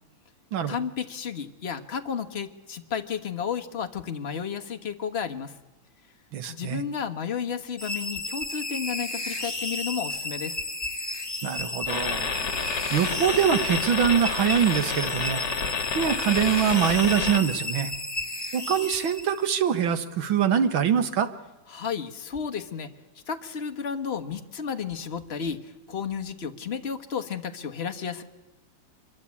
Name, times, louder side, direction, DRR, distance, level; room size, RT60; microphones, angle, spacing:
voice 1, 0.7-5.5 6.5-10.6 21.7-22.9 23.3-28.2, left 7 dB, 35° left, 7 dB, 1.6 m, -32 dB
voice 2, 6.3-6.8 11.4-12.3 12.7-15.4 15.9-17.9 18.5-21.3, right 8 dB, 85° right, 10 dB, 2.2 m, -24 dB
sound 1, 7.8-19.7, left 2 dB, 15° left, 1.7 m, -33 dB
sound 2, 11.9-17.4, left 5 dB, 60° left, 2.4 m, -30 dB
25.5 x 23.0 x 8.5 m, 1.1 s
omnidirectional pair, 2.1 m